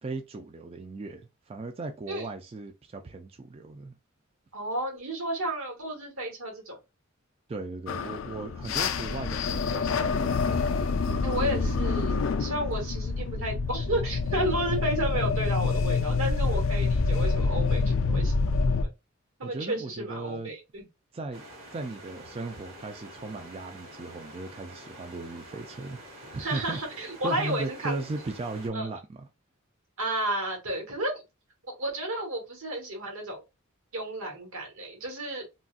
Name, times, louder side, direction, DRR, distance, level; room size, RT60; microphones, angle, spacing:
voice 1, 0.0-4.0 7.5-11.5 19.4-20.5 21.1-21.4 21.7-26.0 26.3-26.8 27.2-29.3, right 3 dB, 30° right, 0.3 m, -37 dB
voice 2, 4.5-6.8 11.2-18.3 18.8-18.9 19.4-20.8 26.4-28.0 28.7-28.9 30.0-31.2 31.8-33.4 33.9-35.4, right 1 dB, 90° right, 1.5 m, -32 dB
sound 1, 7.9-18.8, left 4 dB, 70° left, 0.4 m, -27 dB
sound 2, 21.3-28.7, right 1 dB, 45° right, 1.7 m, -47 dB
3.9 x 2.4 x 2.4 m
head